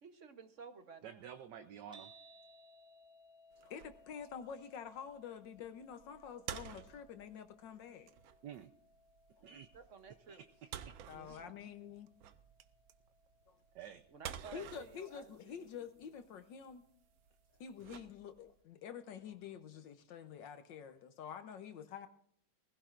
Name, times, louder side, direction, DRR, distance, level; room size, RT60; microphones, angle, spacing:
voice 1, 0.0-1.3 9.4-10.4 10.8-11.5 14.1-15.7, right 5 dB, 50° right, 9 dB, 1.0 m, -54 dB
voice 2, 1.0-2.1 8.4-8.7 9.4-9.8 10.3-11.0 11.3-11.4 13.7-14.0, right 9 dB, 70° right, 9 dB, 1.2 m, -51 dB
sound 1, 1.9-18.2, equal, 5° right, 1.8 m, -66 dB
sound 2, 3.5-18.6, right 10 dB, 85° right, 1.5 m, -53 dB
voice 3, 3.6-8.1 9.4-9.5 11.1-12.1 13.5-13.6 14.5-16.8 17.6-22.1, left 7 dB, 70° left, 9 dB, 1.4 m, -48 dB
20.0 x 16.0 x 2.5 m, 0.67 s
omnidirectional pair, 2.1 m